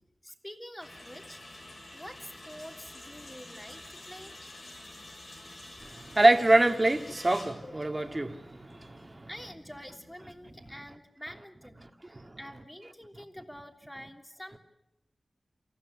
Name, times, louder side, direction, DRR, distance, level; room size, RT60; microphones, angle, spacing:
voice 1, 0.2-1.7 1.9-4.4 9.3-14.6, equal, 10° left, 3.3 m, -47 dB
sound 1, 0.8-10.7, left 2 dB, 65° left, 7.3 m, -49 dB
voice 2, 5.8-9.3 12.2-12.4, right 2 dB, 30° right, 2.0 m, -25 dB
28.5 x 15.5 x 9.8 m
wide cardioid pair, 85°, 0 cm